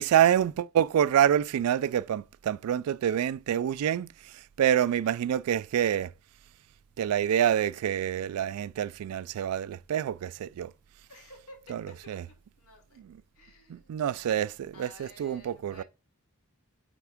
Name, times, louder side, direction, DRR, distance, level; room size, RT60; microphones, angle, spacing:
voice 1, 0.0-4.1 4.3-6.1 7.0-10.7 11.7-11.8 12.1-12.2 13.7-15.8, right 10 dB, 85° right, 0.3 m, -27 dB
voice 2, 4.7-5.2 11.1-13.0 13.3-15.8, left 1 dB, 80° left, 2.4 m, -54 dB
9.1 x 3.5 x 3.5 m
head